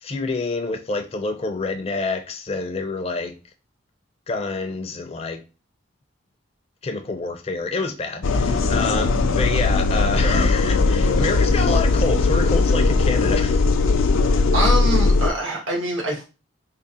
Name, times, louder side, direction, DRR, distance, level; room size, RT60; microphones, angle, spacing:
voice 1, 0.0-3.4 4.3-5.4 6.8-13.6, left 3 dB, 30° left, 0.4 m, -27 dB
sound 1, 8.2-15.3, left 3 dB, 90° left, 0.4 m, -19 dB
voice 2, 14.5-16.2, right 1 dB, 75° right, 1.4 m, -24 dB
3.6 x 2.1 x 4.1 m
head